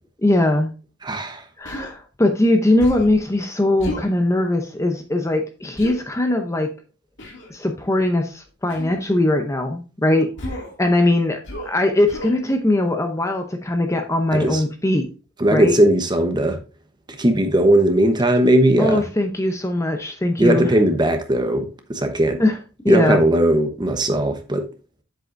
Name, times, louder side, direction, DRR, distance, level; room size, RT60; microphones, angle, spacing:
voice 1, 0.2-0.7 1.6-6.8 7.5-10.3 10.8-15.1 15.5-15.7 18.8-20.7 22.4-22.6 22.8-23.2, left 1 dB, 15° left, 0.7 m, -20 dB
voice 2, 1.0-1.4 14.3-14.6 15.4-16.6 17.2-19.0 20.4-22.4 22.9-24.7, right 1 dB, 20° right, 1.0 m, -18 dB
Human voice, 1.6-1.9 2.8-3.2 3.8-4.1 5.8-6.0 7.2-7.5 8.7-9.0 10.4-10.8 11.4-11.8 12.1-12.4, left 1 dB, 60° left, 2.4 m, -32 dB
7.8 x 7.6 x 2.5 m
head